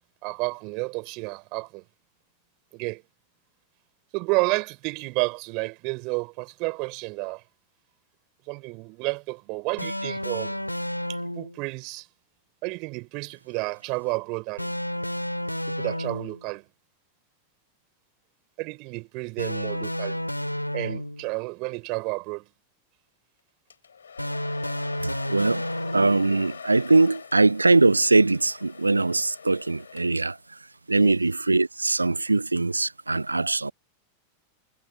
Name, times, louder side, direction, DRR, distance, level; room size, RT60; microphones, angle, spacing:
voice 1, 0.2-1.8 2.7-3.0 4.1-7.4 8.5-10.6 11.1-12.1 12.6-14.7 15.7-16.6 18.6-20.2 20.7-22.4 31.0-31.2, right 28 dB, 45° right, 5.9 m, -31 dB
sound 1, 9.8-11.6 14.6-16.5 19.4-21.3 24.2-26.4, left 1 dB, 90° left, 2.5 m, -31 dB
Domestic sounds home sounds, 23.7-30.4, left 6 dB, 70° left, 5.6 m, -43 dB
voice 2, 25.0-25.6 25.9-30.6 30.9-33.7, right 3 dB, 80° right, 0.5 m, -22 dB
figure-of-eight pair, 90°, 0 cm